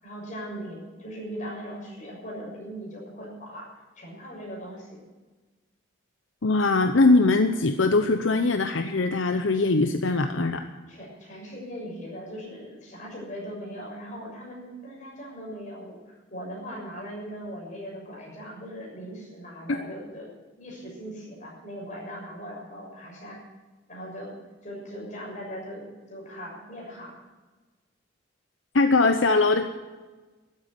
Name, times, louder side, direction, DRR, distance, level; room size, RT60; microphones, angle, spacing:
voice 1, 0.0-3.7 3.9-5.0 10.9-23.4 23.9-24.3 24.6-27.2, equal, 40° left, -3 dB, 6.8 m, -39 dB
voice 2, 6.4-10.7 28.7-29.7, left 3 dB, 75° left, 7 dB, 0.8 m, -21 dB
13.0 x 9.2 x 10.0 m, 1.2 s
head